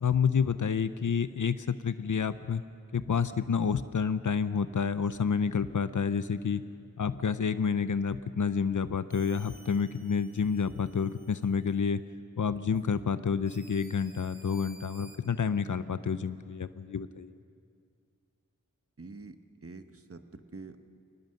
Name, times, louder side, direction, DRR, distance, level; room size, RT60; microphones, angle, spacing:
voice 1, 0.0-2.6 2.9-6.6 7.0-12.0 12.4-17.3, left 6 dB, 80° left, 13 dB, 0.6 m, -29 dB
sound 1, 9.1-11.9 12.7-12.9 13.4-15.2, right 1 dB, 30° right, 2.0 m, -56 dB
voice 2, 19.0-20.8, right 3 dB, 50° right, 8 dB, 1.2 m, -46 dB
22.5 x 20.0 x 6.5 m, 2.2 s
wide cardioid pair, 50°, 30 cm